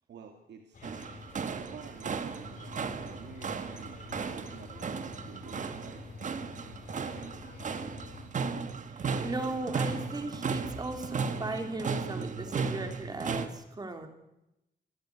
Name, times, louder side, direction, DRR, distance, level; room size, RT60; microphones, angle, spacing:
voice 1, 0.1-0.9 1.7-6.0, right 6 dB, 85° right, 4 dB, 2.2 m, -50 dB
sound 1, 0.7-8.3, left 4 dB, 50° left, 5.5 m, -48 dB
sound 2, 0.8-13.5, right 5 dB, 45° right, 1.6 m, -35 dB
voice 2, 8.9-14.1, right 2 dB, 25° right, 5 dB, 3.2 m, -37 dB
26.5 x 13.0 x 9.6 m, 0.90 s
wide cardioid pair, 155°, 17 cm